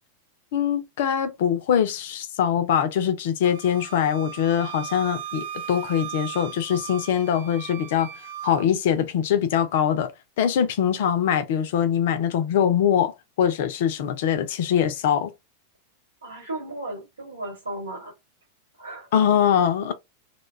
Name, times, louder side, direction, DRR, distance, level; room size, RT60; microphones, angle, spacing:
voice 1, 0.5-8.1 8.4-10.1 10.4-15.3 19.1-19.9, left 9 dB, 55° left, 0.4 m, -23 dB
Wind instrument woodwind instrument, 3.4-8.7, right 10 dB, 55° right, 0.3 m, -37 dB
voice 2, 16.2-18.1 18.8-19.1, right 1 dB, 75° right, 1.3 m, -35 dB
2.2 x 2.1 x 3.1 m
figure-of-eight pair, 90°, 0 cm